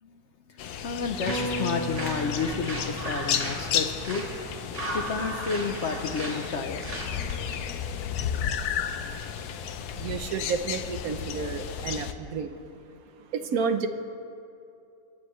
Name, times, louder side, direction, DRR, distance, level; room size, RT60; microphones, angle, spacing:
voice 1, 0.0-4.3 4.9-6.9, left 5 dB, 55° left, 6 dB, 0.9 m, -31 dB
sound 1, 0.6-12.1, left 8 dB, 90° left, 1.2 m, -33 dB
sound 2, 1.0-7.6, right 1 dB, 50° right, 2.7 m, -37 dB
sound 3, 1.3-6.2 6.6-6.7, left 1 dB, 25° left, 0.6 m, -37 dB
voice 2, 9.9-12.5 13.3-13.9, right 5 dB, 70° right, 8 dB, 1.1 m, -30 dB
28.5 x 9.7 x 3.1 m, 2.7 s
omnidirectional pair, 1.6 m